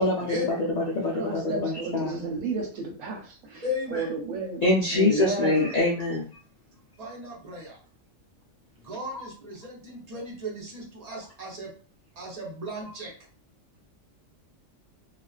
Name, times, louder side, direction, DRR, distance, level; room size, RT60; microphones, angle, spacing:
voice 1, 0.0-2.2 4.6-6.3, left 2 dB, 70° left, -4 dB, 0.4 m, -25 dB
voice 2, 1.1-3.6 3.9-4.6 4.9-5.7, right 3 dB, 85° right, 2 dB, 1.1 m, -32 dB
voice 3, 3.6-4.1 7.0-7.8 8.8-11.7 12.2-13.1, left 1 dB, 40° right, -2 dB, 0.7 m, -35 dB
2.4 x 2.3 x 2.3 m, 0.39 s
omnidirectional pair, 1.3 m